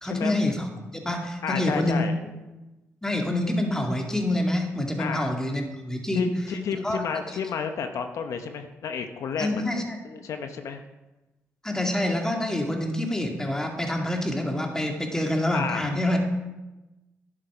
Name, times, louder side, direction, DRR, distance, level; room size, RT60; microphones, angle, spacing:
voice 1, 0.0-2.0 3.0-6.3 6.8-7.4 9.4-10.0 11.6-16.2, left 1 dB, 10° left, 2 dB, 2.2 m, -27 dB
voice 2, 1.4-2.2 5.0-5.3 6.1-9.7 10.0-10.8 15.5-15.9, left 6 dB, 75° left, 7 dB, 0.8 m, -31 dB
11.0 x 7.6 x 5.0 m, 1.1 s
cardioid pair, 75°, 5 cm